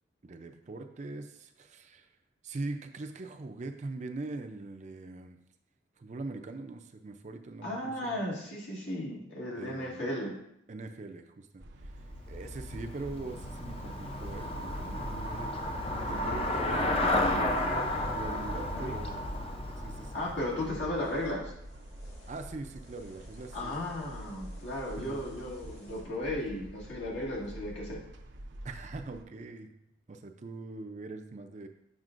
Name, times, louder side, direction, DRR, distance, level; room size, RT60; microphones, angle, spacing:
voice 1, 0.2-2.1 2.4-5.4 6.0-8.2 9.5-10.1 10.7-11.9 12.3-17.5 18.0-19.3 19.8-20.3 22.3-23.8 25.0-25.2 28.6-29.7 30.1-31.7, right 2 dB, 40° right, 6 dB, 0.4 m, -42 dB
voice 2, 7.6-10.4 18.7-18.9 20.1-21.5 23.5-28.0, left 1 dB, 70° left, -4 dB, 1.9 m, -35 dB
sound 1, 11.6-29.2, right 1 dB, 80° right, 0.6 m, -47 dB
Traffic noise roadway noise / Bicycle, 12.0-21.2, left 1 dB, 30° left, 0.6 m, -33 dB
sound 2, 20.2-26.0, left 1 dB, 90° left, 2.0 m, -58 dB
7.4 x 5.8 x 2.5 m, 0.76 s
head